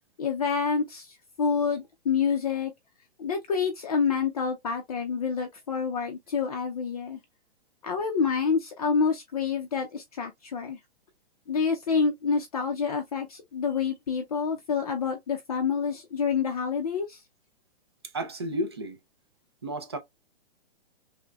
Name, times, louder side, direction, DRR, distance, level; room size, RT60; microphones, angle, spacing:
voice 1, 0.2-2.7 3.2-7.2 7.8-10.8 11.5-17.2, left 5 dB, 35° left, 0.5 m, -28 dB
voice 2, 18.1-19.0 19.6-20.0, equal, 25° right, 0.4 m, -32 dB
5.9 x 2.1 x 2.3 m
hypercardioid pair, 170°, 32 cm